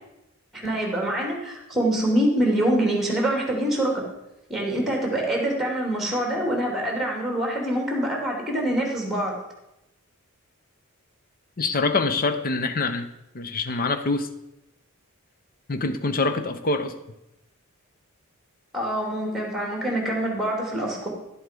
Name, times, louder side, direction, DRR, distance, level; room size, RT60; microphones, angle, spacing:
voice 1, 0.5-4.0 4.5-9.3 18.7-21.1, right 1 dB, ahead, 0 dB, 2.7 m, -25 dB
voice 2, 11.6-13.1 13.3-14.3 15.7-16.9, left 3 dB, 40° left, 10 dB, 0.8 m, -25 dB
12.0 x 7.9 x 5.2 m, 0.88 s
head